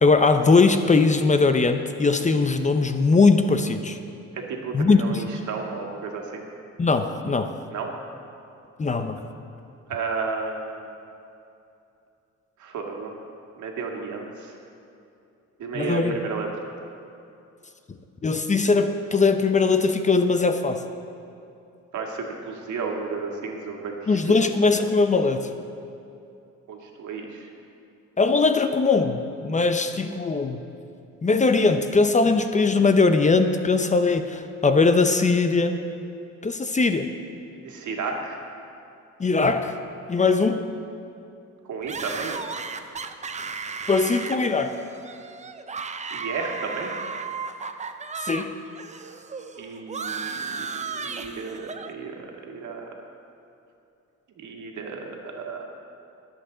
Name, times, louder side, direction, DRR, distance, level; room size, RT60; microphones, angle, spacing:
voice 1, 0.0-4.0 4.7-5.2 6.8-7.5 8.8-9.2 15.7-16.1 18.2-20.8 24.1-25.5 28.2-30.6 31.2-35.7 36.4-37.1 39.2-39.8 40.1-40.6 43.9-44.8 48.2-48.5, left 4 dB, 25° left, 8 dB, 0.7 m, -20 dB
voice 2, 4.3-6.4 7.7-7.9 9.9-10.9 12.6-13.1 13.6-14.6 15.6-16.5 21.9-24.2 26.7-27.5 37.5-38.4 41.7-42.4 46.1-46.9 49.6-52.8 54.4-55.6, right 4 dB, 75° right, 1 dB, 1.9 m, -33 dB
sound 1, 41.9-48.5 48.7-51.9, right 5 dB, 25° right, 0.6 m, -35 dB
21.5 x 8.0 x 3.9 m, 2.7 s
cardioid pair, 90°, 30 cm